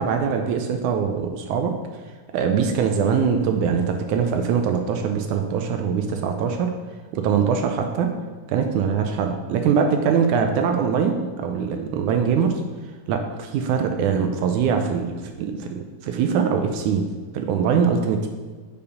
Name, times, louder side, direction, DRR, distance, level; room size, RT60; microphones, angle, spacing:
voice 1, 0.0-1.8 2.3-6.7 7.1-8.1 8.5-12.6 13.1-17.0 17.3-18.3, right 6 dB, 80° right, 4 dB, 1.9 m, -22 dB
6.9 x 5.2 x 5.3 m, 1.4 s
omnidirectional pair, 3.9 m